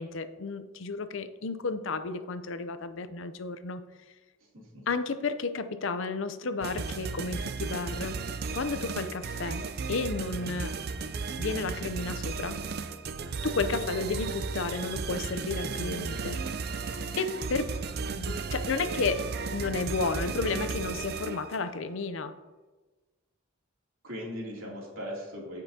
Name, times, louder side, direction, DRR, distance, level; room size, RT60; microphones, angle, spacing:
voice 1, 0.0-3.8 4.9-8.2 8.5-10.7 11.4-12.6 13.4-16.4 17.2-17.7 18.2-19.3 19.5-22.3, left 4 dB, 65° left, 11 dB, 0.5 m, -32 dB
voice 2, 4.5-4.9 17.9-18.0 24.0-25.6, equal, 75° right, -3 dB, 2.8 m, -39 dB
sound 1, 6.6-21.7, right 4 dB, 50° right, 0.5 m, -35 dB
15.0 x 5.4 x 2.8 m, 1.2 s
head